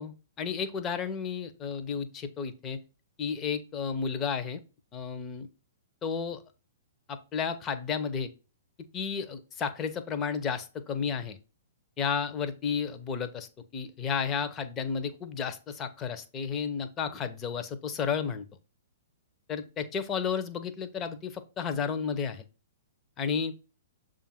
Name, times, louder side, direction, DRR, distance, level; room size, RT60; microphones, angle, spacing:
voice 1, 0.0-2.8 3.2-4.6 4.9-5.5 6.0-6.4 7.1-8.3 8.9-11.4 12.0-18.4 19.5-22.4 23.2-23.5, left 6 dB, 25° left, 9 dB, 0.8 m, -32 dB
6.9 x 2.5 x 5.6 m, 0.32 s
figure-of-eight pair, 115°, 0 cm